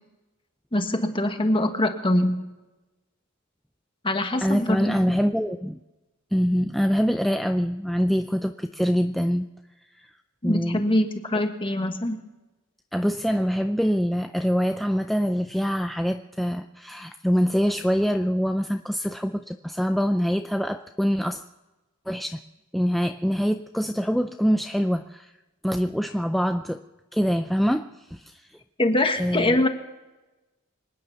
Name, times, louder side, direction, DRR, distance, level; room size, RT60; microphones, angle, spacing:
voice 1, 0.7-2.4 4.0-4.9 10.4-12.2 28.8-29.7, left 1 dB, 25° left, 7 dB, 1.4 m, -23 dB
voice 2, 4.4-5.8 6.3-9.5 10.0-10.1 10.4-10.8 12.9-21.4 22.1-22.4 22.7-25.3 25.6-26.8 27.1-28.4 29.2-29.6, equal, ahead, 7 dB, 0.4 m, -24 dB
25.5 x 9.7 x 5.8 m, 1.1 s
head